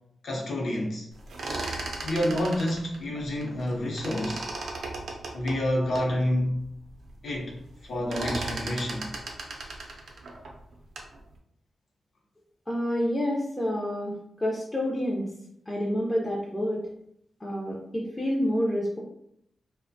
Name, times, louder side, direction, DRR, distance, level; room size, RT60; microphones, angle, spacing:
voice 1, 0.2-1.1 2.0-4.4 5.3-6.6 7.2-9.1, left 1 dB, 75° left, -2 dB, 0.7 m, -28 dB
sound 1, 1.2-3.7 4.0-6.1 6.6-6.7 7.0-7.4 7.6-11.2, right 2 dB, 75° right, 0.4 m, -36 dB
voice 2, 12.7-15.3 15.7-16.8 17.4-19.0, equal, 20° left, -4 dB, 0.4 m, -28 dB
2.4 x 2.1 x 2.5 m, 0.73 s
wide cardioid pair, 120°, 0 cm